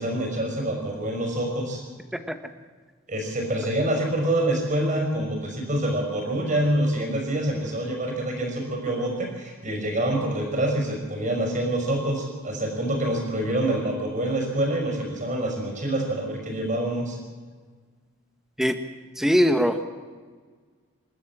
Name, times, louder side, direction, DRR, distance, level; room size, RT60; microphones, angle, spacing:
voice 1, 0.0-1.8 3.1-17.2, right 1 dB, 35° right, 2 dB, 5.7 m, -26 dB
voice 2, 19.2-19.9, equal, ahead, 7 dB, 1.2 m, -21 dB
27.0 x 13.0 x 7.4 m, 1.5 s
head